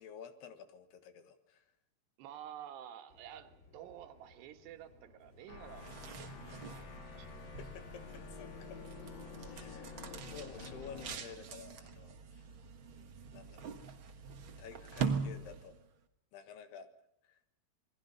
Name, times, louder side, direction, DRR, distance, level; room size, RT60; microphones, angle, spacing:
voice 1, 0.0-1.7 7.3-8.8 9.5-12.6 12.9-13.7 14.6-15.8 16.3-16.9 17.2-17.4, left 7 dB, 80° left, 9 dB, 3.6 m, -52 dB
voice 2, 2.2-6.4 6.7-6.9 7.2-7.3, right 10 dB, 90° right, 7 dB, 3.5 m, -50 dB
sound 1, 3.1-11.7, left 2 dB, 15° left, 4.0 m, -64 dB
sound 2, 5.5-11.2, left 5 dB, 55° left, 1.4 m, -49 dB
sound 3, 5.6-15.9, right 6 dB, 65° right, 1.2 m, -43 dB
27.5 x 21.5 x 5.5 m, 0.77 s
omnidirectional pair, 4.7 m